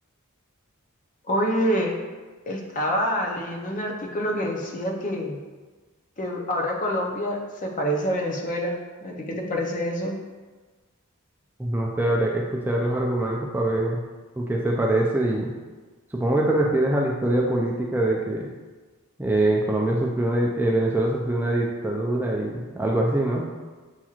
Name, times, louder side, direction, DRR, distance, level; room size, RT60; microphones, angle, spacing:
voice 1, 1.3-1.9 2.5-5.4 6.2-10.2, equal, 35° left, 1 dB, 0.6 m, -27 dB
voice 2, 11.6-14.0 14.4-15.5 16.1-18.5 19.2-23.4, right 1 dB, 10° right, -2 dB, 0.3 m, -23 dB
7.1 x 2.9 x 2.4 m, 1.3 s
head